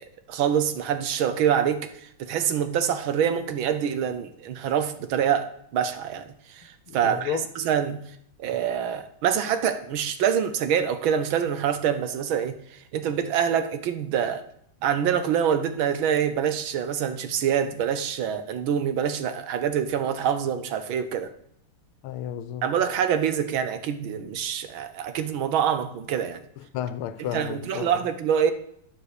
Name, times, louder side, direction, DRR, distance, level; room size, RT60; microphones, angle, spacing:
voice 1, 0.0-8.1 8.4-12.6 12.9-14.4 14.8-21.3 22.6-26.4 27.3-28.5, right 8 dB, 70° right, 1.5 m, -25 dB
voice 2, 6.9-7.5 22.0-22.7 26.6-28.1, left 10 dB, 80° left, 1.5 m, -33 dB
9.6 x 7.4 x 6.6 m
omnidirectional pair, 2.4 m